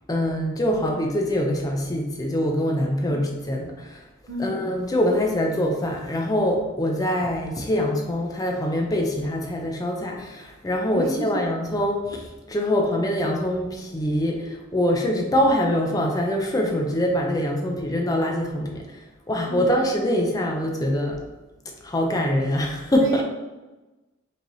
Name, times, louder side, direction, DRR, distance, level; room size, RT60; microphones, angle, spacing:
voice 1, 0.1-4.0 4.4-19.0 19.3-21.2 21.8-23.2, equal, 20° left, 1 dB, 0.4 m, -24 dB
voice 2, 4.3-4.6 10.9-11.3 19.5-19.7 22.9-23.2, right 2 dB, 70° right, 2 dB, 0.6 m, -31 dB
4.6 x 2.8 x 2.6 m, 1.1 s
head